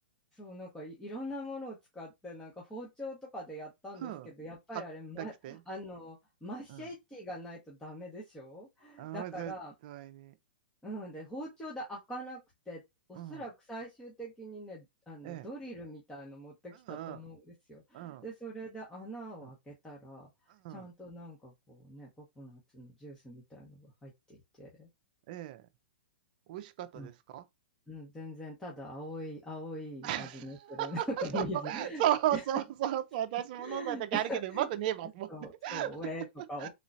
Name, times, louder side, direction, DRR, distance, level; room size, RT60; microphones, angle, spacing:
voice 1, 0.3-9.7 10.8-12.4 12.7-12.8 13.1-20.3 20.7-24.9 26.9-27.1 27.9-32.0 32.3-32.4 33.6-34.7 35.3-36.7, equal, 10° left, 1.2 m, -43 dB
voice 2, 3.9-4.3 4.7-4.8 5.2-5.6 6.7-6.9 9.0-9.5 9.8-10.3 13.1-13.4 15.2-15.5 16.7-17.2 17.9-18.2 19.4-19.5 20.5-20.9 25.3-25.6 26.5-27.4 30.0-31.1 31.3-35.9 36.6-36.7, right 12 dB, 50° right, 0.6 m, -35 dB
3.8 x 3.0 x 2.6 m
hypercardioid pair, 125°, 6 cm